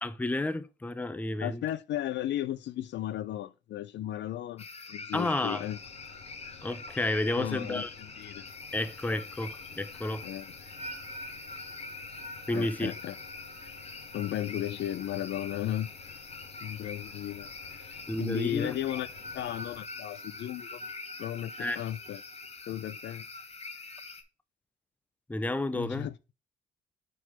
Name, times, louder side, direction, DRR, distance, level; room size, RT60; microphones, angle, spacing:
voice 1, 0.0-1.6 5.1-5.6 6.6-7.9 8.7-10.3 12.5-12.9 18.1-18.8 21.6-21.8 25.3-26.1, left 2 dB, 10° left, 0.5 m, -31 dB
voice 2, 1.4-5.8 7.3-8.5 10.2-10.5 12.5-13.2 14.1-15.9 16.6-19.1 19.3-20.8 21.2-22.2 22.7-23.3 25.7-26.1, left 12 dB, 65° left, 0.4 m, -35 dB
sound 1, 4.6-24.2, left 4 dB, 30° left, 1.0 m, -45 dB
sound 2, 5.6-19.8, left 6 dB, 80° left, 2.0 m, -54 dB
sound 3, 9.8-17.0 17.2-17.6 18.9-23.5, equal, 30° right, 1.7 m, -48 dB
4.6 x 4.4 x 5.6 m
cardioid pair, 90°, 20 cm